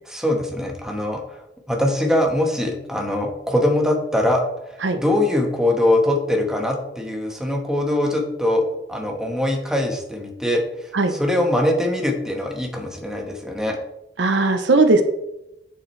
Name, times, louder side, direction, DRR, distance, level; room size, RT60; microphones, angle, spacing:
voice 1, 0.1-1.2 1.7-4.4 5.0-10.6 11.1-13.8, left 1 dB, 5° right, 1 dB, 1.3 m, -22 dB
voice 2, 14.2-15.0, right 3 dB, 85° right, 7 dB, 0.8 m, -17 dB
8.8 x 7.2 x 3.3 m, 0.89 s
head